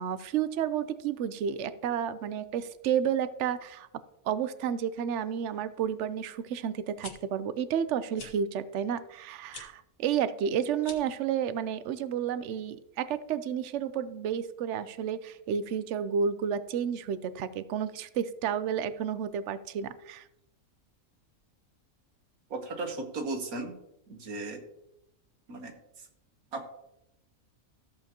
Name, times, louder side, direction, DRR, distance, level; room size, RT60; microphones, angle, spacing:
voice 1, 0.0-3.9 4.3-20.2, right 8 dB, 65° right, 13 dB, 0.8 m, -31 dB
sound 1, 6.8-7.1 8.1-8.3 9.5-9.7 10.8-11.2, left 4 dB, 65° left, 1.6 m, -44 dB
voice 2, 22.5-23.8 24.1-24.6 25.5-25.8 26.5-26.7, right 3 dB, 85° right, 4 dB, 1.8 m, -36 dB
14.0 x 7.7 x 2.9 m, 0.85 s
omnidirectional pair, 1.5 m